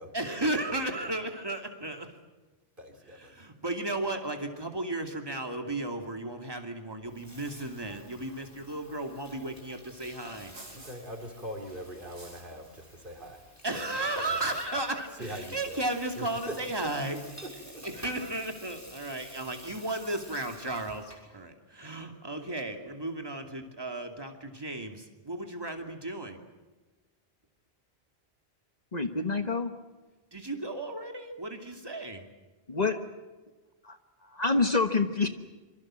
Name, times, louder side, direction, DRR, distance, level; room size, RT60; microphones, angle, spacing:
voice 1, 0.1-2.1 3.2-10.5 13.6-17.2 17.8-26.4 30.3-32.2, right 2 dB, 20° right, 4 dB, 2.6 m, -34 dB
voice 2, 0.7-1.1 2.8-3.5 8.4-8.6 10.7-13.4 13.7-14.4 15.2-15.8 16.2-16.6 17.4-17.8, equal, 50° right, 4 dB, 4.3 m, -43 dB
Water tap faucet / Sink (filling or washing), 7.0-21.3, equal, 15° left, 5.9 m, -51 dB
sound 1, 8.7-16.9, right 2 dB, 85° right, 4.1 m, -57 dB
voice 3, 28.9-29.7 32.7-33.0 33.8-35.3, left 3 dB, 40° left, 7 dB, 1.4 m, -27 dB
26.5 x 24.5 x 7.6 m, 1.2 s
omnidirectional pair, 1.1 m